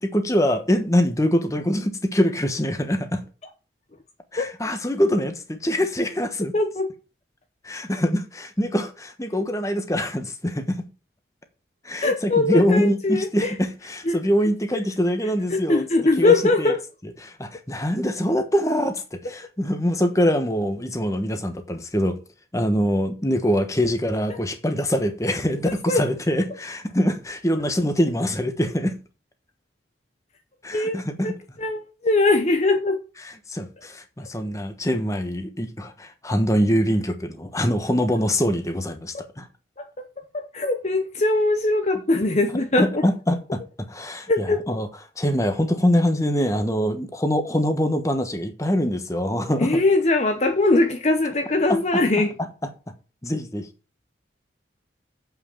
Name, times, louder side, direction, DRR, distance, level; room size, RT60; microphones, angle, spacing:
voice 1, 0.0-3.2 4.3-6.5 7.6-10.9 11.8-15.8 16.2-16.7 17.0-22.2 22.5-29.0 30.6-31.4 33.2-39.5 42.8-44.9 45.2-49.8 51.7-52.0 53.2-53.7, equal, 15° left, 1.2 m, -24 dB
voice 2, 6.5-6.9 12.0-13.5 14.1-14.2 15.5-16.8 24.3-24.4 25.6-26.0 30.7-31.3 31.6-33.0 39.1-39.2 40.3-43.0 44.3-44.6 49.6-52.3, left 2 dB, 35° left, 0.9 m, -21 dB
7.8 x 5.9 x 7.1 m
head